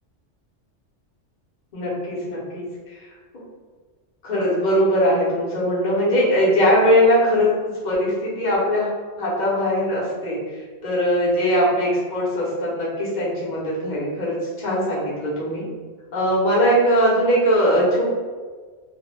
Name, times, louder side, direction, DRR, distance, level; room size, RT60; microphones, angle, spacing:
voice 1, 1.7-3.0 4.2-10.4 10.8-15.6 16.1-18.0, equal, 40° left, -7 dB, 0.9 m, -20 dB
2.3 x 2.1 x 3.1 m, 1.5 s
omnidirectional pair, 1.3 m